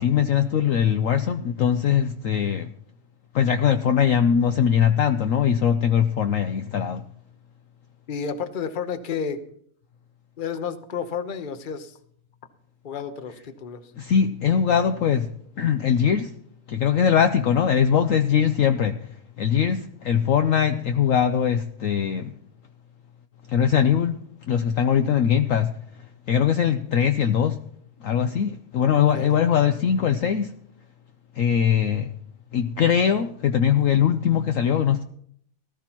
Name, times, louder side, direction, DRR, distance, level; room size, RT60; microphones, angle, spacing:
voice 1, 0.0-2.7 3.3-7.0 14.0-15.3 15.6-16.3 16.7-19.0 19.4-22.3 23.5-24.2 24.5-25.7 26.3-27.6 28.0-30.5 31.4-32.1 32.5-35.0, left 8 dB, 65° left, 0.9 m, -21 dB
voice 2, 8.1-9.4 10.4-12.0 12.8-13.8 29.1-29.3, left 6 dB, 35° left, 0.9 m, -31 dB
18.5 x 13.5 x 3.0 m
omnidirectional pair, 1.7 m